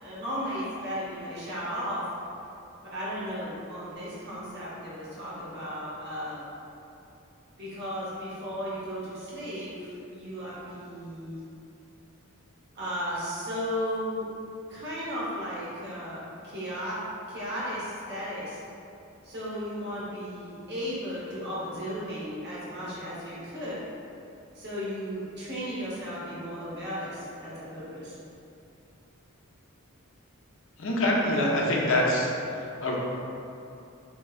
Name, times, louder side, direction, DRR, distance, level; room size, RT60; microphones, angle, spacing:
voice 1, 0.0-2.1 2.8-6.5 7.6-11.4 12.7-14.3 14.7-17.0 17.3-18.6 19.2-23.8 24.5-28.2, equal, 50° right, -9 dB, 0.9 m, -35 dB
voice 2, 30.8-32.3 32.8-33.0, left 1 dB, 65° left, -3 dB, 0.6 m, -24 dB
3.6 x 2.8 x 2.4 m, 2.7 s
head